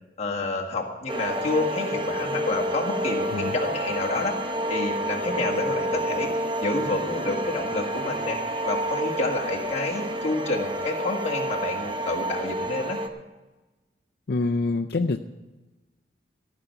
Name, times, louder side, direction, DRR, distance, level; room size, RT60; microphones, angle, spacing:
voice 1, 0.2-4.4 4.7-6.3 6.6-8.4 8.6-13.0, left 2 dB, 35° left, -1 dB, 1.7 m, -29 dB
sound 1, 1.1-13.1, equal, 25° right, 0.8 m, -29 dB
voice 2, 14.3-15.2, left 3 dB, 55° left, 3 dB, 0.5 m, -25 dB
15.0 x 5.7 x 9.1 m, 1.2 s
head